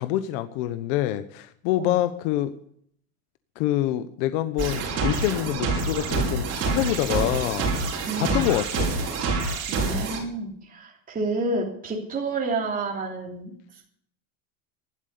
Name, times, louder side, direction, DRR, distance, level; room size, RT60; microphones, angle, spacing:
voice 1, 0.0-2.5 3.6-7.8 8.2-8.9, left 13 dB, 65° left, 11 dB, 1.1 m, -26 dB
sound 1, 4.6-10.2, right 3 dB, 40° right, 5.5 m, -27 dB
voice 2, 8.0-8.5 9.7-13.5, right 3 dB, 20° right, -1 dB, 3.3 m, -29 dB
15.5 x 12.0 x 6.8 m, 0.66 s
supercardioid pair, 135°, 40 cm